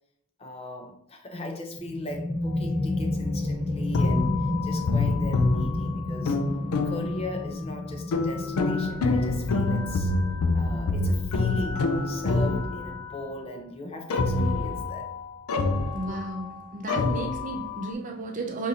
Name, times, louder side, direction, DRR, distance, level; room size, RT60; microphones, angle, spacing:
voice 1, 0.4-6.4 6.8-10.1 10.5-15.1, left 1 dB, 30° left, 0.6 m, -38 dB
sound 1, 1.8-13.1, left 2 dB, 15° right, 1.2 m, -31 dB
sound 2, 3.9-7.4 8.1-13.2 14.1-16.6 16.9-17.9, left 3 dB, 85° left, 0.4 m, -27 dB
voice 2, 15.9-18.7, right 2 dB, 35° right, 0.5 m, -33 dB
6.3 x 2.6 x 2.7 m
head